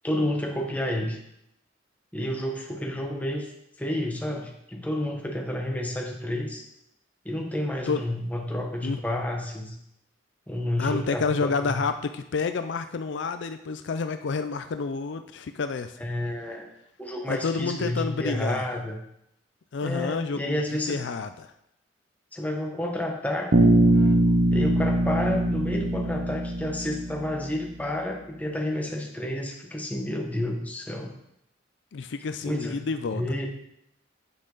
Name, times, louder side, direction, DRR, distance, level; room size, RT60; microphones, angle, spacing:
voice 1, 0.0-1.2 2.1-3.5 3.8-6.6 7.2-9.7 10.5-11.8 16.0-16.7 17.0-19.0 19.8-21.0 22.3-23.8 24.5-31.1 32.4-32.8 33.1-33.5, left 1 dB, 10° left, 1 dB, 1.2 m, -30 dB
voice 2, 10.8-15.9 17.3-18.6 19.7-20.6 20.9-21.5 31.9-33.2, left 4 dB, 70° left, 9 dB, 0.4 m, -29 dB
Bass guitar, 23.5-27.6, right 1 dB, 55° right, 0.8 m, -22 dB
8.6 x 6.3 x 3.9 m, 0.78 s
head